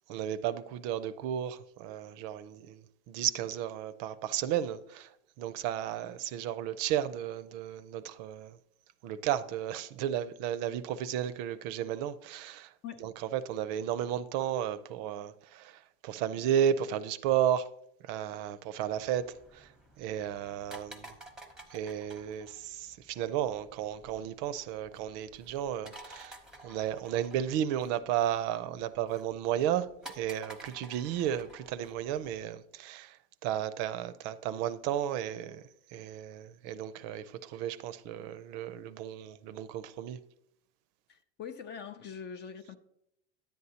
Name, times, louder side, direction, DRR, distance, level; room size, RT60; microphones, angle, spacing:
voice 1, 0.1-8.6 9.0-12.7 13.0-17.7 18.0-19.7 20.0-21.1 21.7-40.2, right 10 dB, 55° right, 0.5 m, -33 dB
sound 1, 18.9-32.5, right 1 dB, ahead, 0.8 m, -53 dB
voice 2, 41.1-42.7, left 7 dB, 30° left, 0.4 m, -43 dB
10.5 x 8.1 x 2.8 m
supercardioid pair, 125°, 39 cm